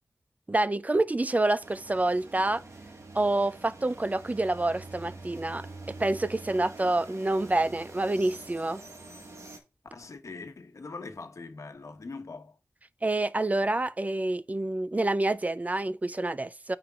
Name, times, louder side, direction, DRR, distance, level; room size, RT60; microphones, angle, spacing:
voice 1, 0.5-2.6 3.1-8.8 13.0-16.8, right 2 dB, 30° right, 0.4 m, -27 dB
sound 1, 1.6-9.6, right 2 dB, 65° right, 1.7 m, -46 dB
voice 2, 9.9-12.6, left 3 dB, 75° left, 1.1 m, -42 dB
9.2 x 5.1 x 2.4 m
wide cardioid pair, 90°, 5 cm